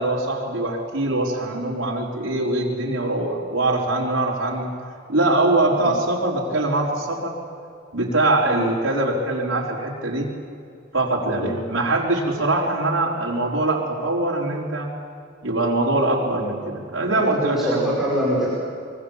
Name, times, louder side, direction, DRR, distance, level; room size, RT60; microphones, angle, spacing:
voice 1, 0.0-4.7 5.1-7.3 7.9-10.3 10.9-14.9 15.4-17.8, right 2 dB, 75° right, -4 dB, 4.5 m, -22 dB
voice 2, 17.1-18.5, equal, ahead, -7 dB, 5.2 m, -24 dB
25.5 x 23.0 x 7.4 m, 2.4 s
head